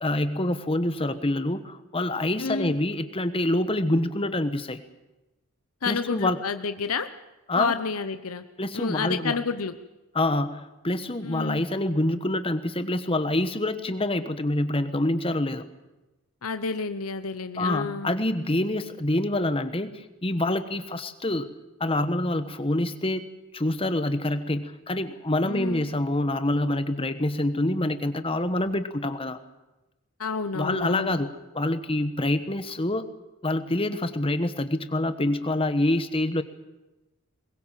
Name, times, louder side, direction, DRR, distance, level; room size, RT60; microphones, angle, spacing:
voice 1, 0.0-4.8 5.8-6.4 7.5-7.7 8.6-9.4 10.1-15.7 17.6-21.5 21.8-23.3 23.5-29.4 30.5-31.3 31.5-33.0 33.4-36.4, left 1 dB, 25° left, 11 dB, 1.2 m, -26 dB
voice 2, 2.4-2.7 5.8-7.1 7.6-8.4 8.7-9.8 11.2-11.6 16.4-18.1 25.4-25.9 30.2-31.2, left 5 dB, 80° left, 10 dB, 0.9 m, -30 dB
22.0 x 21.0 x 7.5 m, 1.0 s
head